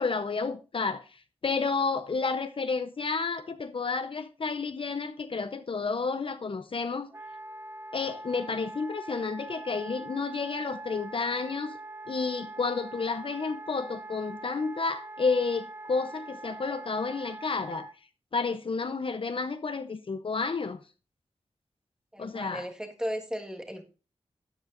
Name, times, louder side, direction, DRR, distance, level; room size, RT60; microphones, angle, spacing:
voice 1, 0.0-7.1 7.9-11.8 12.1-17.9 18.3-20.8 22.2-22.7, left 4 dB, 50° left, 0.6 m, -31 dB
Wind instrument woodwind instrument, 7.1-17.9, right 2 dB, 20° right, 0.8 m, -43 dB
voice 2, 22.1-23.8, equal, 5° right, 1.5 m, -36 dB
12.5 x 9.1 x 2.5 m
wide cardioid pair, 110°, 11 cm